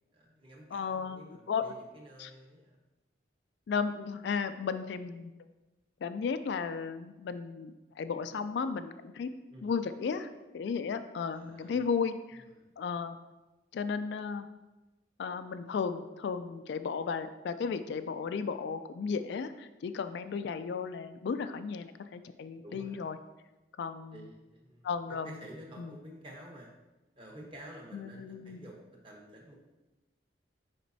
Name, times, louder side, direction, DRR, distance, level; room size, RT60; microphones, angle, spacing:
voice 1, 0.1-2.8 9.5-9.7 11.3-11.9 12.4-12.7 22.6-23.0 24.1-26.7 27.1-29.6, right 1 dB, 25° right, -1 dB, 1.0 m, -51 dB
voice 2, 0.7-1.2 1.5-1.6 2.2-2.3 3.7-5.3 6.0-9.3 9.6-10.3 10.5-12.4 12.8-13.2 13.7-14.5 15.2-23.2 23.8-24.2 24.8-25.3 25.8-25.9 27.9-28.6, left 5 dB, 65° left, 10 dB, 0.3 m, -34 dB
7.5 x 5.1 x 2.7 m, 1.1 s
head